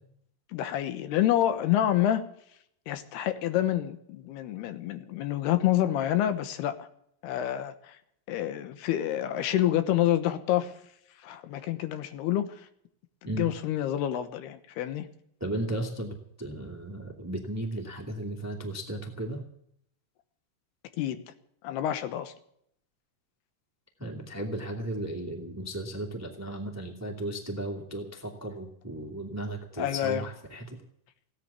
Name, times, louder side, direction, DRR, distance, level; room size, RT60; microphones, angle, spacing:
voice 1, 0.5-2.2 2.9-6.9 7.2-8.0 8.3-10.8 11.2-12.7 13.2-15.1 21.0-21.2 21.6-22.3 29.8-30.2, left 12 dB, 80° left, 11 dB, 3.1 m, -28 dB
voice 2, 15.4-19.4 24.0-30.8, right 1 dB, 5° right, 2 dB, 1.4 m, -35 dB
17.0 x 9.9 x 8.3 m, 0.70 s
omnidirectional pair, 4.6 m